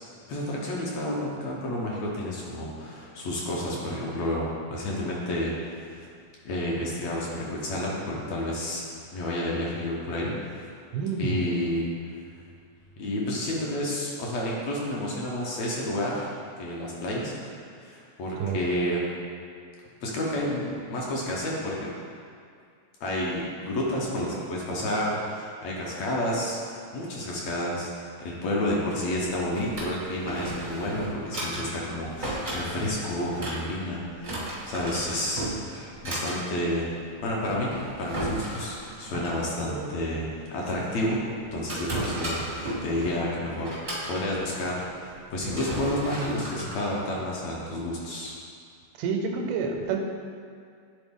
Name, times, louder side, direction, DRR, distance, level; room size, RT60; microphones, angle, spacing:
voice 1, 0.3-6.1 6.5-10.7 11.2-11.9 13.0-16.3 16.6-17.5 17.8-19.0 20.0-21.9 23.0-36.9 37.2-41.2 41.5-48.3, left 1 dB, 70° left, -4 dB, 1.9 m, -30 dB
voice 2, 10.9-11.5 18.4-18.6 39.7-39.9 49.0-50.0, right 5 dB, 85° right, 3 dB, 2.1 m, -28 dB
Drawer open or close, 29.2-47.8, right 1 dB, 50° right, 0.5 m, -36 dB
10.5 x 3.8 x 3.6 m, 2.3 s
omnidirectional pair, 3.6 m